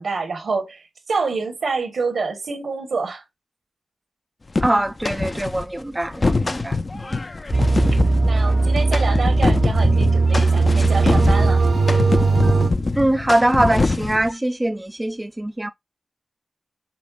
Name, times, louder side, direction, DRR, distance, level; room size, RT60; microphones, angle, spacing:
voice 1, 0.0-3.2 8.2-11.6, right 4 dB, 90° right, 1.2 m, -27 dB
sound 1, 4.6-5.6 6.0-14.3, left 3 dB, 50° left, 0.4 m, -24 dB
voice 2, 4.6-7.2 13.0-15.7, right 1 dB, 20° right, 0.4 m, -22 dB
sound 2, 7.5-12.7, right 3 dB, 70° right, 0.7 m, -18 dB
6.0 x 3.2 x 2.3 m
cardioid pair, 45°, 0 cm